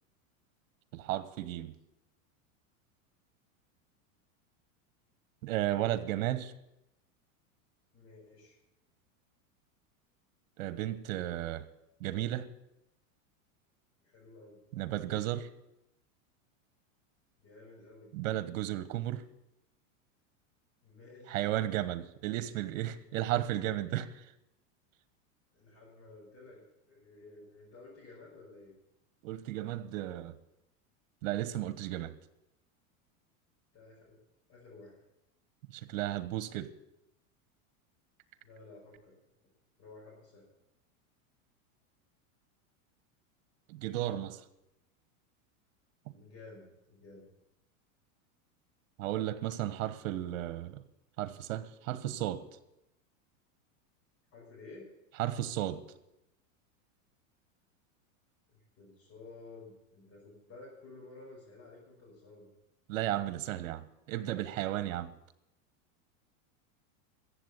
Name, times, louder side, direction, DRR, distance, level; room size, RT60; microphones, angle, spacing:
voice 1, 0.9-1.8 5.4-6.5 10.6-11.7 12.0-12.5 14.7-15.5 18.1-19.2 21.3-24.3 29.2-30.3 31.2-32.1 35.7-36.7 43.7-44.4 49.0-50.8 51.2-52.4 55.2-55.8 62.9-65.1, right 13 dB, 70° right, 1.3 m, -34 dB
voice 2, 7.9-8.6 14.0-14.6 17.4-18.1 20.8-21.7 25.5-26.6 26.9-28.7 33.7-34.2 34.5-35.0 38.4-39.2 39.8-40.5 46.1-47.3 54.3-54.9 58.5-62.5, left 3 dB, 30° left, 6.0 m, -53 dB
15.0 x 8.0 x 8.2 m
supercardioid pair, 140°, 41 cm